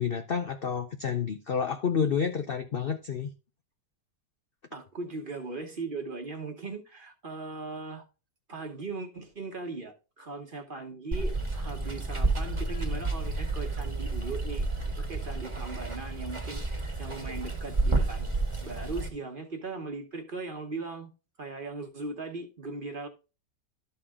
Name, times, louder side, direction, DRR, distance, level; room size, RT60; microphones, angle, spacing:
voice 1, 0.0-3.3, left 6 dB, 75° left, 0.5 m, -29 dB
voice 2, 4.7-8.0 8.5-18.3 18.6-21.1 21.4-23.1, right 3 dB, 35° right, 1.1 m, -39 dB
Water, 11.1-19.1, right 3 dB, 20° right, 1.3 m, -31 dB
12.5 x 4.2 x 3.6 m
omnidirectional pair, 1.9 m